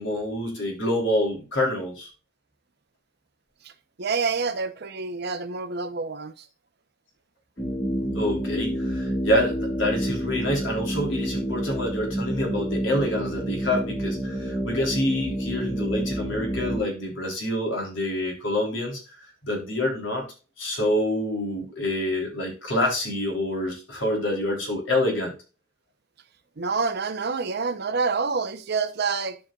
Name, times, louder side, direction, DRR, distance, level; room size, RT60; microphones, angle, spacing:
voice 1, 0.0-2.1 8.1-19.0 19.4-20.3 20.6-25.3, left 1 dB, 80° left, 3.6 m, -27 dB
voice 2, 4.0-6.5 26.6-29.4, right 4 dB, 60° right, 0.8 m, -27 dB
sound 1, 7.6-16.8, equal, 30° left, 2.6 m, -29 dB
12.5 x 5.3 x 2.4 m
head